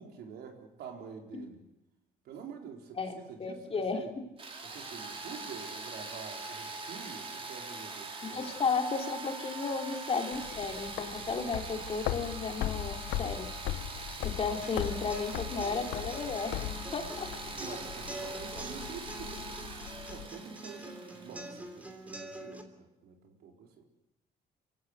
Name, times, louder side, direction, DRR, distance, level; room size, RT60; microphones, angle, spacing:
voice 1, 0.0-1.6 2.2-4.1 4.6-8.6 17.5-23.8, right 6 dB, 70° right, 2 dB, 4.4 m, -47 dB
voice 2, 3.0-4.0 8.2-13.5 14.2-16.6 16.9-17.3, left 4 dB, 35° left, 4 dB, 3.3 m, -34 dB
sound 1, 4.4-22.1, right 3 dB, 35° right, 4.0 m, -43 dB
sound 2, 10.3-20.3, left 14 dB, 90° left, 0.9 m, -39 dB
sound 3, 14.6-22.6, right 1 dB, 10° right, 3.1 m, -45 dB
26.5 x 16.0 x 8.2 m, 0.94 s
cardioid pair, 110°, 17 cm